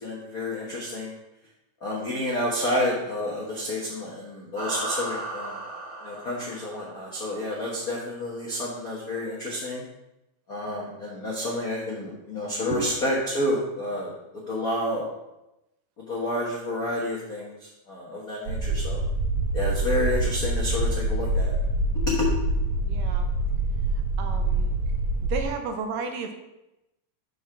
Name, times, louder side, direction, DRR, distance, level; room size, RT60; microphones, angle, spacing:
voice 1, 0.0-1.1 1.8-5.5 6.0-9.8 10.5-14.1 14.5-15.0 16.1-17.5 17.9-19.0 19.5-21.5 22.0-22.3, left 1 dB, 70° left, -4 dB, 0.8 m, -29 dB
sound 1, 4.5-7.3, right 2 dB, 40° right, 1.3 m, -35 dB
sound 2, 18.5-25.4, right 2 dB, 60° right, 1.6 m, -25 dB
voice 2, 22.9-23.3 24.2-24.7 25.3-26.4, right 5 dB, 80° right, 6 dB, 2.3 m, -32 dB
6.3 x 5.3 x 5.9 m, 0.92 s
omnidirectional pair, 3.9 m